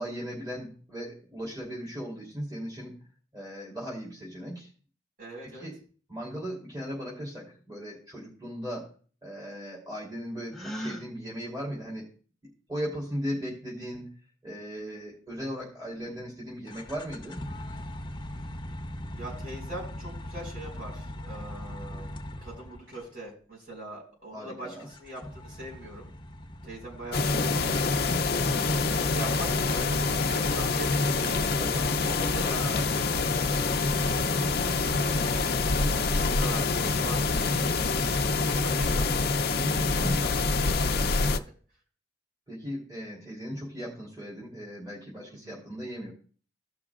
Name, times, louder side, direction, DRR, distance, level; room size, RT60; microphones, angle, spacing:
voice 1, 0.0-2.9 3.3-4.7 5.4-5.8 6.1-8.9 9.2-12.1 12.4-14.1 14.4-17.4 24.3-24.9 31.6-32.0 39.6-40.2 42.5-46.1, equal, 20° right, -5 dB, 3.0 m, -37 dB
voice 2, 5.2-5.7 19.1-26.1 26.6-27.8 28.3-31.5 32.0-35.8 36.2-37.3 38.0-39.4 39.9-41.4 45.3-45.6, right 1 dB, 50° right, -3 dB, 4.7 m, -42 dB
Gasp, 10.5-11.1, equal, ahead, 0.5 m, -36 dB
sound 1, 16.7-23.1 24.8-34.9, left 1 dB, 25° left, 0.8 m, -42 dB
sound 2, 27.1-41.4, left 3 dB, 55° left, 0.5 m, -26 dB
16.5 x 5.9 x 2.4 m, 0.43 s
head